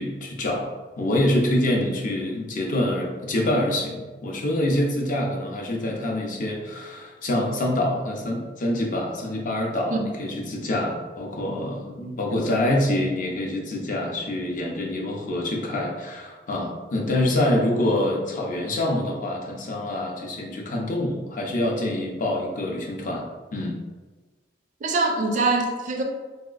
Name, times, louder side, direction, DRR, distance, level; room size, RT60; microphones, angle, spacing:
voice 1, 0.0-23.3 23.5-23.8, left 1 dB, 45° left, 0 dB, 0.5 m, -26 dB
voice 2, 24.8-26.0, right 3 dB, 45° right, 3 dB, 0.3 m, -24 dB
3.1 x 2.8 x 2.4 m, 1.3 s
head